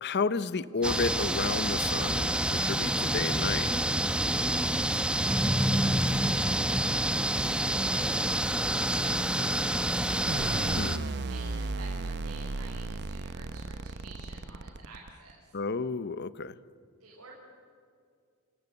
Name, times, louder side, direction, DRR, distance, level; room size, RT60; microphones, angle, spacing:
voice 1, 0.0-3.7 10.8-11.1 15.5-16.5, left 4 dB, 50° left, 16 dB, 0.8 m, -31 dB
sound 1, 0.8-11.0, right 1 dB, 5° right, 0.9 m, -27 dB
voice 2, 4.4-15.6 17.0-17.3, right 3 dB, 70° right, -4 dB, 6.0 m, -51 dB
sound 2, 4.7-15.0, left 1 dB, 15° left, 3.8 m, -53 dB
sound 3, 10.3-15.3, right 3 dB, 50° right, 0.7 m, -35 dB
28.0 x 19.0 x 8.0 m, 2.3 s
head